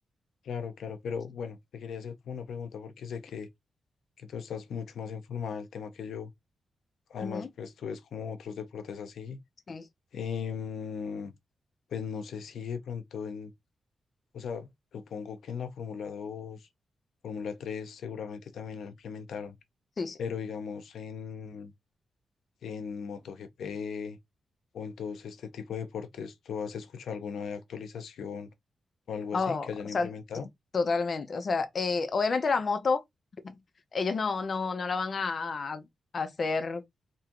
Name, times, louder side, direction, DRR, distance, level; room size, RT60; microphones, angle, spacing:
voice 1, 0.4-3.5 4.2-6.3 7.1-9.4 10.1-11.3 11.9-13.5 14.3-16.7 17.2-19.6 20.2-21.7 22.6-24.2 24.7-28.5 29.1-30.5, left 6 dB, 85° left, 0.7 m, -38 dB
voice 2, 29.3-30.1 30.7-33.0 33.4-33.6 33.9-35.8 36.1-36.8, left 4 dB, 40° left, 0.6 m, -29 dB
3.6 x 3.0 x 2.9 m
wide cardioid pair, 170°, 0 cm